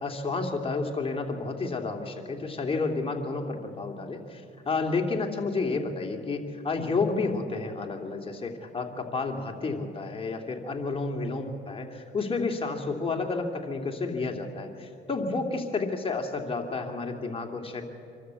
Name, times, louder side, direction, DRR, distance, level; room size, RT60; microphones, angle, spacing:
voice 1, 0.0-17.8, left 3 dB, 30° left, 2 dB, 2.6 m, -31 dB
25.5 x 13.0 x 8.2 m, 2.6 s
cardioid pair, 90°, 20 cm